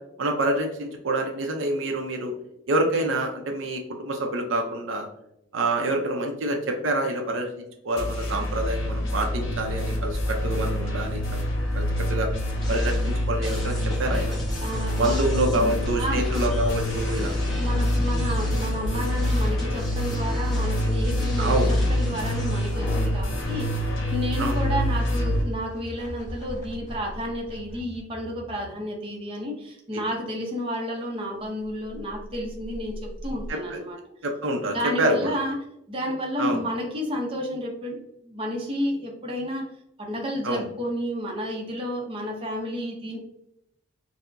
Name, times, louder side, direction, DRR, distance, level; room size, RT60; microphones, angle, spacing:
voice 1, 0.2-2.3 2.7-5.1 5.5-11.4 11.7-12.3 12.7-14.3 14.9-17.3 21.4-21.7 24.4-24.6 33.5-33.8 34.2-35.4 36.4-36.6 40.4-40.7, right 1 dB, 70° right, 3 dB, 0.5 m, -27 dB
sound 1, 8.0-25.4, left 1 dB, 65° left, 0.9 m, -26 dB
sound 2, 12.6-23.0, equal, ahead, 0.8 m, -38 dB
voice 2, 14.6-15.2 15.5-16.3 17.6-34.0 34.6-35.6 35.9-38.0 38.2-39.7 40.0-43.2, equal, 25° right, -1 dB, 0.6 m, -31 dB
sound 3, 24.3-28.8 31.4-33.5, equal, 40° left, 0.9 m, -41 dB
4.4 x 2.0 x 2.5 m, 0.79 s
head